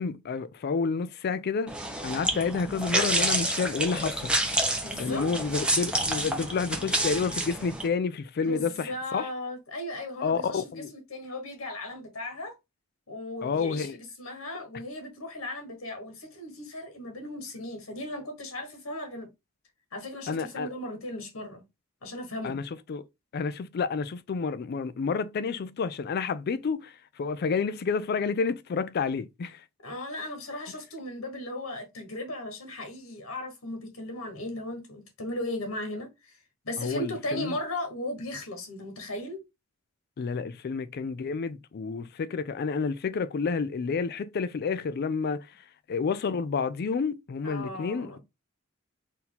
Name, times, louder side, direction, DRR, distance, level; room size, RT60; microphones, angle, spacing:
voice 1, 0.0-1.7 2.0-9.3 10.2-10.9 13.4-14.0 20.3-20.7 22.4-23.0 23.3-29.7 36.8-37.6 40.2-48.2, left 5 dB, 50° left, 0.4 m, -30 dB
sound 1, 1.7-7.9, right 1 dB, 5° right, 0.9 m, -28 dB
voice 2, 4.8-5.3 8.4-12.5 13.1-13.9 14.2-19.3 19.9-21.6 22.0-22.6 29.8-39.4 47.4-48.2, left 1 dB, 85° left, 1.4 m, -37 dB
4.3 x 2.7 x 3.8 m
head